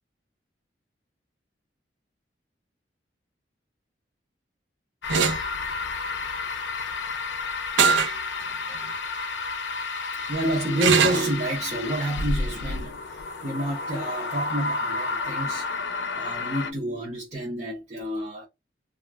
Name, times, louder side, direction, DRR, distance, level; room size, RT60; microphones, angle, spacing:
sound 1, 5.0-16.7, left 3 dB, 75° left, 0.4 m, -31 dB
sound 2, 5.1-5.4 7.8-8.2 8.7-8.8 10.8-11.3, right 6 dB, 85° right, 0.4 m, -20 dB
voice 1, 10.3-15.7 16.1-18.5, right 1 dB, 40° right, 0.6 m, -29 dB
2.3 x 2.1 x 3.3 m
head